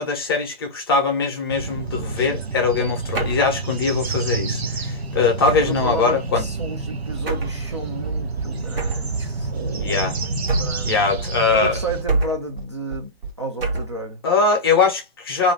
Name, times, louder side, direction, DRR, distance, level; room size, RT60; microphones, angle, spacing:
voice 1, 0.0-6.4 9.8-10.1 10.8-11.8 14.2-15.5, left 4 dB, 25° left, 0.6 m, -21 dB
sound 1, 1.5-12.0, right 4 dB, 90° right, 0.7 m, -29 dB
sound 2, 3.1-3.5 5.4-5.9 7.2-7.6 8.8-9.1 10.5-10.9 12.1-12.5 13.6-14.0, right 3 dB, 70° right, 1.1 m, -25 dB
voice 2, 5.5-11.0 11.5-13.1 13.4-14.2, right 2 dB, 30° right, 0.4 m, -32 dB
sound 3, 8.0-13.3, right 5 dB, 55° right, 0.8 m, -35 dB
2.4 x 2.2 x 3.3 m
figure-of-eight pair, 145°, 31 cm